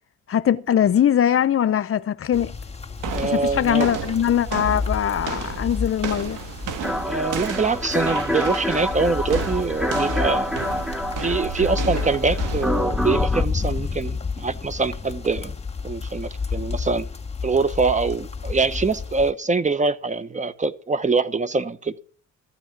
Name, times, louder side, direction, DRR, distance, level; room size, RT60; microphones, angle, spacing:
voice 1, 0.3-2.5 3.2-6.4, left 9 dB, 50° left, 0.7 m, -21 dB
sound 1, 2.3-19.3, left 5 dB, 20° left, 2.3 m, -31 dB
sound 2, 3.0-12.9, right 7 dB, 90° right, 1.6 m, -33 dB
voice 2, 3.1-3.9 7.1-10.6 11.2-15.5 15.8-17.1 17.4-21.9, right 4 dB, 25° right, 1.0 m, -24 dB
sound 3, 6.8-13.4, left 1 dB, ahead, 1.1 m, -27 dB
14.5 x 9.1 x 6.0 m
cardioid pair, 90°, 30 cm